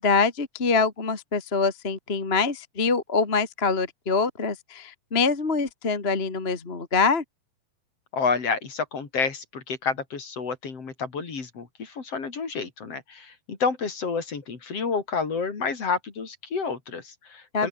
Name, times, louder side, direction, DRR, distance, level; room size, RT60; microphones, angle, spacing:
voice 1, 0.0-7.2 17.5-17.7, left 4 dB, 20° left, 1.7 m, -24 dB
voice 2, 8.1-17.7, left 5 dB, 40° left, 4.2 m, -29 dB
open air
omnidirectional pair, 4.3 m